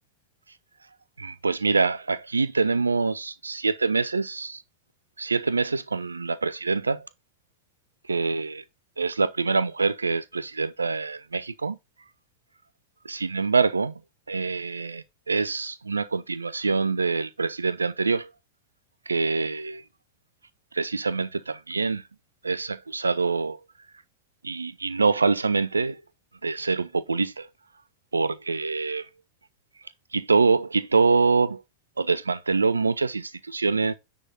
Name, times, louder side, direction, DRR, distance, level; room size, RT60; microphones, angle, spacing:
voice 1, 1.2-4.6 5.2-7.0 8.1-8.6 9.0-11.8 13.1-13.9 14.3-18.3 19.1-19.8 20.7-22.0 22.4-23.6 24.4-26.0 26.4-27.5 28.1-29.1 30.1-31.6 32.0-33.9, right 4 dB, 75° right, 0.5 m, -25 dB
9.7 x 3.6 x 4.1 m
figure-of-eight pair, 90°, 0 cm